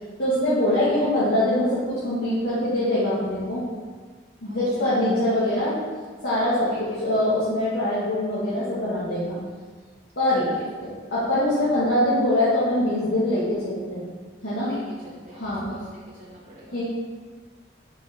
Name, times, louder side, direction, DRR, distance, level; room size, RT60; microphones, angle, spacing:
voice 1, 0.2-3.6 4.4-5.7 6.2-9.3 10.2-10.5 10.8-14.0 14.4-14.7 15.3-15.7 16.7-16.8, left 1 dB, 90° left, -11 dB, 1.8 m, -23 dB
voice 2, 0.8-1.1 4.5-4.8 5.4-5.7 6.7-7.1 10.3-10.7 11.5-11.7 14.6-16.8, equal, 40° right, -7 dB, 0.9 m, -45 dB
5.6 x 5.6 x 3.6 m, 1.5 s
head